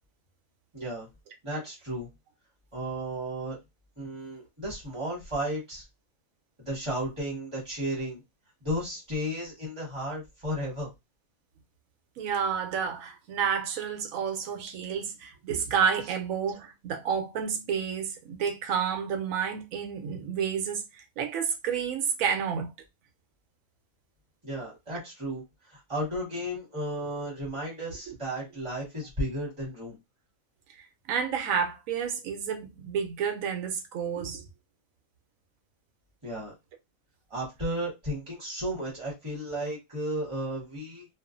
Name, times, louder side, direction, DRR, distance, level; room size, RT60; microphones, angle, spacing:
voice 1, 0.7-1.1 1.4-2.1 2.7-3.6 4.0-5.8 6.7-8.2 8.6-10.9 24.4-25.4 25.7-30.0 36.2-36.5 37.3-41.1, equal, 25° right, 1.1 m, -34 dB
voice 2, 12.2-22.7 31.1-34.4, right 7 dB, 80° right, 1.0 m, -30 dB
2.4 x 2.4 x 2.4 m
omnidirectional pair, 1.4 m